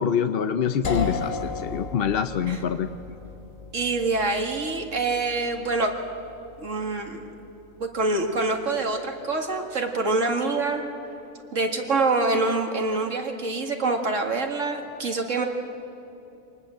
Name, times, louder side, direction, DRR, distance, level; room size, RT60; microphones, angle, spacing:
voice 1, 0.0-2.9, left 7 dB, 55° left, 9 dB, 0.8 m, -25 dB
sound 1, 0.8-10.6, left 4 dB, 85° left, 1.7 m, -37 dB
voice 2, 3.7-5.9 6.6-7.2 7.8-10.8 11.5-15.5, right 3 dB, 75° right, 3 dB, 2.4 m, -25 dB
25.0 x 19.5 x 7.7 m, 2.8 s
omnidirectional pair, 1.3 m